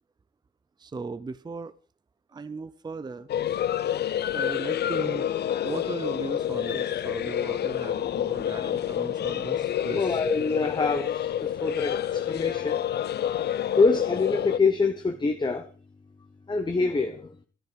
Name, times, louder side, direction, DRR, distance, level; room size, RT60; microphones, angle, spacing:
voice 1, 0.8-1.7 2.3-3.3 4.3-5.3 5.6-10.2, right 4 dB, 20° right, 0.6 m, -37 dB
sound 1, 3.3-14.6, left 10 dB, 55° left, 0.7 m, -28 dB
voice 2, 9.3-12.8 13.8-15.7 16.5-17.3, left 4 dB, 20° left, 1.2 m, -26 dB
13.5 x 12.0 x 5.2 m
cardioid pair, 90°, 20 cm